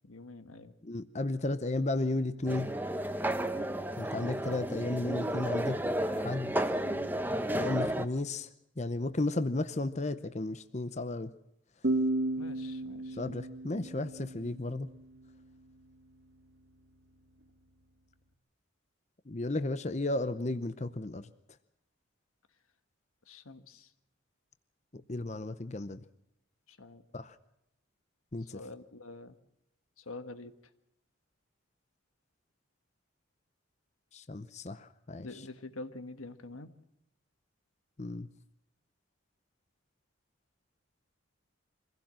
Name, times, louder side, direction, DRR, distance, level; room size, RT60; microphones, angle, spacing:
voice 1, 0.1-0.7 12.2-13.2 23.3-23.9 26.7-27.0 28.5-29.4 30.0-30.5 35.2-36.7, left 2 dB, 90° left, 10 dB, 1.5 m, -46 dB
voice 2, 0.8-2.7 4.0-5.8 6.1-6.5 7.5-8.5 8.8-11.3 13.2-14.9 19.3-21.3 24.9-26.0 27.1-27.4 28.3-28.6 34.1-35.4 38.0-38.3, left 2 dB, 35° left, 12 dB, 0.7 m, -34 dB
sound 1, 2.5-8.1, right 1 dB, 10° right, 0.9 m, -32 dB
sound 2, 11.8-15.3, right 2 dB, 65° right, 2.2 m, -34 dB
25.0 x 16.0 x 7.5 m, 0.81 s
head